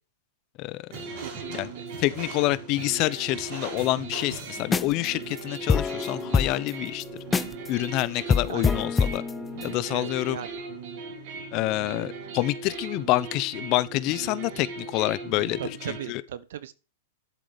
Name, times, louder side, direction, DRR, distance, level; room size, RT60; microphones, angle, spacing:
sound 1, 0.9-16.1, right 4 dB, 55° right, 5.7 m, -38 dB
voice 1, 1.2-1.8 8.5-8.6 9.9-10.6 15.6-16.7, right 10 dB, 70° right, 1.2 m, -38 dB
voice 2, 2.0-7.0 7.7-9.2 9.6-10.4 11.5-16.2, left 18 dB, 45° left, 0.9 m, -27 dB
sound 2, 4.6-5.1 5.4-5.5 5.7-7.7 8.0-8.1 8.3-9.7, left 5 dB, 15° left, 0.8 m, -25 dB
12.0 x 7.5 x 5.2 m
hypercardioid pair, 120°, 0 cm